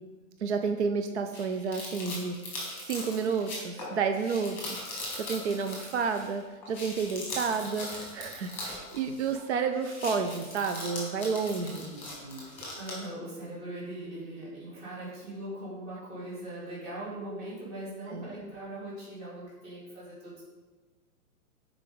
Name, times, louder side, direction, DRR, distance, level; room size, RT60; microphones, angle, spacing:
voice 1, 0.4-11.9 18.1-18.3, right 5 dB, 50° right, 7 dB, 0.5 m, -31 dB
sound 1, 1.3-6.3 6.6-9.5 9.7-13.0, left 2 dB, 5° left, 1.7 m, -40 dB
voice 2, 11.7-12.4 12.8-20.4, right 1 dB, 25° right, -8 dB, 2.6 m, -40 dB
10.0 x 4.7 x 3.8 m, 1.3 s
hypercardioid pair, 180°, 45 cm